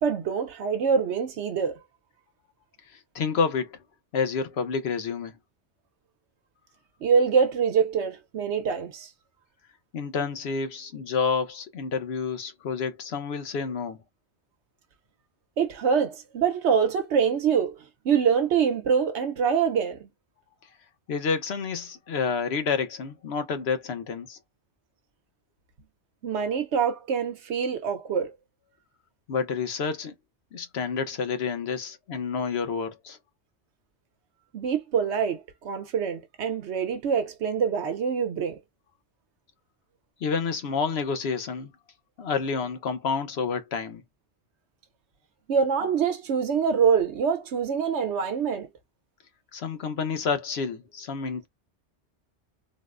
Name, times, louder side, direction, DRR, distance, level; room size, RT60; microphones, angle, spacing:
voice 1, 0.0-1.8 7.0-9.1 15.6-17.7 18.0-20.1 26.2-28.3 34.5-38.6 45.5-48.7, right 6 dB, 75° right, 1.0 m, -25 dB
voice 2, 3.1-3.8 4.1-5.3 9.9-14.0 21.1-24.4 29.3-30.1 30.5-33.2 40.2-41.7 42.2-44.0 49.5-51.5, left 5 dB, 65° left, 0.9 m, -29 dB
3.9 x 2.0 x 2.4 m
omnidirectional pair, 1.2 m